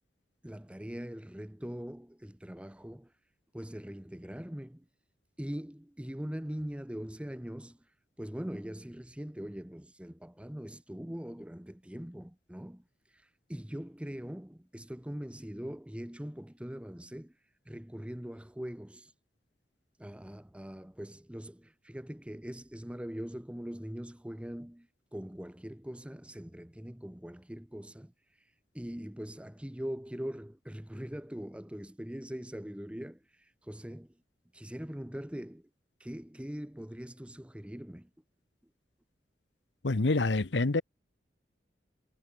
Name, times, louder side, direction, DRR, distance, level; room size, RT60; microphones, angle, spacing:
voice 1, 0.4-3.1 3.5-4.9 5.4-7.8 8.2-12.8 13.1-17.3 17.7-19.1 20.0-28.1 28.7-34.1 34.5-35.7 36.0-38.1, equal, 5° right, 0.8 m, -42 dB
voice 2, 39.8-40.8, left 3 dB, 85° left, 1.0 m, -26 dB
head